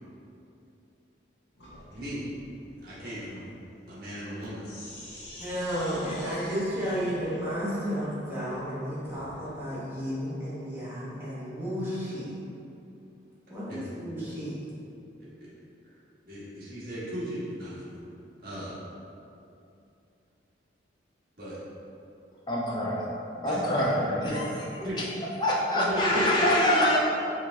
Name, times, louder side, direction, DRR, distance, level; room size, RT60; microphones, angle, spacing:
Sink (filling or washing), 1.6-9.6, left 1 dB, 65° left, 1.0 m, -48 dB
voice 1, 1.9-2.4 2.8-3.4 3.9-4.7 5.8-5.9 13.7-13.8 14.1-14.2 15.4-15.5 16.2-18.0 18.4-18.8 21.4-21.6 23.4-23.9 24.2-24.3 24.8-25.0 25.7-26.2, equal, 50° right, -10 dB, 1.3 m, -37 dB
voice 2, 5.4-12.4 13.5-14.6, equal, 10° right, -10 dB, 1.1 m, -32 dB
voice 3, 22.5-23.0 23.4-24.5 24.8-25.0 25.4-27.0, left 1 dB, 25° left, -5 dB, 0.6 m, -25 dB
4.6 x 2.5 x 3.7 m, 2.7 s
head